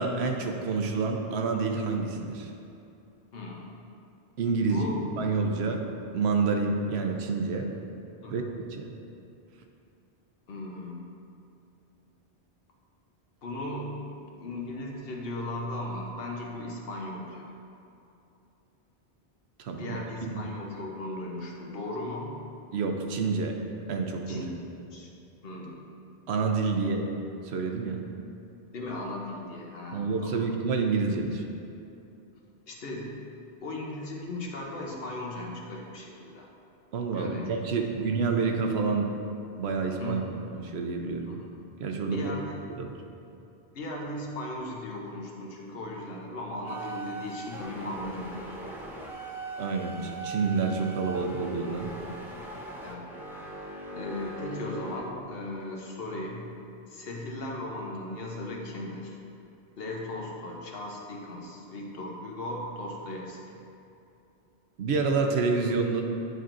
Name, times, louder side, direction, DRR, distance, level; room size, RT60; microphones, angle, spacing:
voice 1, 0.0-2.5 4.4-4.9 5.2-5.8 6.1-7.7 8.3-8.9 19.6-20.4 22.7-23.6 23.9-24.4 26.3-27.1 27.4-28.0 29.9-31.4 36.9-39.1 39.6-41.3 41.8-42.3 42.7-43.0 49.6-51.9 64.8-66.0, right 4 dB, 80° right, 3 dB, 0.9 m, -28 dB
voice 2, 3.3-3.7 4.7-5.0 8.2-8.4 10.5-11.2 13.4-17.5 19.8-22.4 24.3-24.5 24.9-25.1 25.4-25.9 28.7-30.5 32.7-33.2 33.6-36.5 37.1-37.5 37.9-38.0 40.0-40.3 41.2-41.4 42.1-42.6 43.7-48.7 52.2-52.3 52.8-53.1 53.9-56.5 56.9-59.2 59.8-63.6, left 1 dB, 65° left, -1 dB, 1.0 m, -37 dB
sound 1, 46.7-55.0, right 2 dB, 5° right, 0.5 m, -40 dB
9.2 x 4.4 x 2.5 m, 2.8 s
omnidirectional pair, 1.1 m